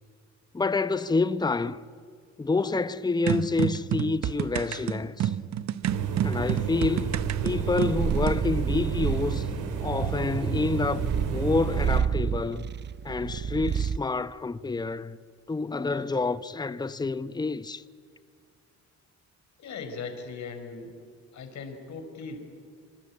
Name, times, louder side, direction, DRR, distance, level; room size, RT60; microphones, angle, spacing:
voice 1, 0.5-1.8 2.4-5.3 6.2-7.2 7.4-9.5 9.8-12.7 13.0-15.2 15.5-17.8, left 3 dB, 15° left, 0.8 m, -28 dB
sound 1, 3.3-8.4, right 11 dB, 65° right, 0.9 m, -29 dB
sound 2, 5.8-12.0, right 6 dB, 85° right, 3.5 m, -32 dB
Purr, 7.1-14.1, right 7 dB, 35° right, 0.6 m, -30 dB
voice 2, 19.6-21.0 21.3-22.4, left 4 dB, 65° left, 4.7 m, -38 dB
25.0 x 24.0 x 8.6 m
cardioid pair, 90°, 30 cm